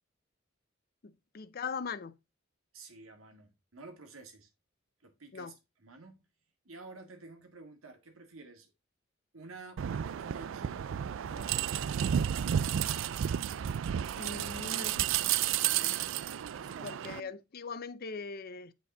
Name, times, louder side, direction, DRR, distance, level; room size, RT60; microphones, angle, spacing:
voice 1, 1.0-2.1 5.3-5.5 14.1-15.1 16.8-18.7, left 5 dB, 45° left, 0.6 m, -40 dB
voice 2, 2.7-4.5 5.0-6.2 6.6-8.7 9.3-10.9 11.3-12.1 15.6-16.0 16.3-17.4, right 3 dB, 80° right, 1.9 m, -51 dB
sound 1, 9.8-17.2, right 9 dB, 65° right, 0.3 m, -32 dB
8.3 x 5.2 x 3.8 m
head